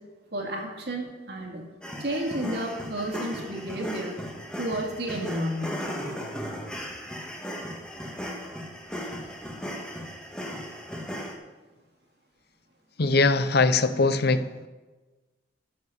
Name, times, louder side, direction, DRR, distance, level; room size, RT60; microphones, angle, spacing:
voice 1, 0.3-1.6 2.0-4.2 4.6-5.9, right 1 dB, 60° right, 1 dB, 2.4 m, -31 dB
sound 1, 1.8-11.3, equal, 5° left, 1.7 m, -36 dB
voice 2, 13.0-14.7, left 3 dB, 60° left, 12 dB, 0.7 m, -22 dB
14.0 x 6.7 x 6.7 m, 1.2 s
head